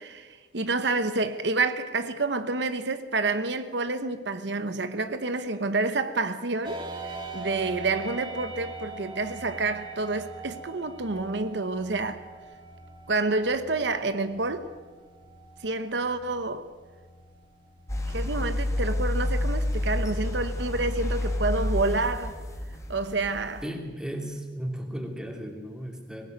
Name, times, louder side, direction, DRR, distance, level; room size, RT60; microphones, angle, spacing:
voice 1, 0.0-6.8 7.3-12.2 13.1-14.7 15.6-16.7 18.1-22.3 22.9-23.6, right 3 dB, 75° right, 1.0 m, -28 dB
sound 1, 6.6-20.3, right 3 dB, 30° right, 2.9 m, -43 dB
sound 2, 17.9-23.7, left 1 dB, 15° left, 2.4 m, -29 dB
voice 2, 23.6-26.3, equal, 5° right, 2.8 m, -35 dB
20.5 x 18.0 x 9.3 m
head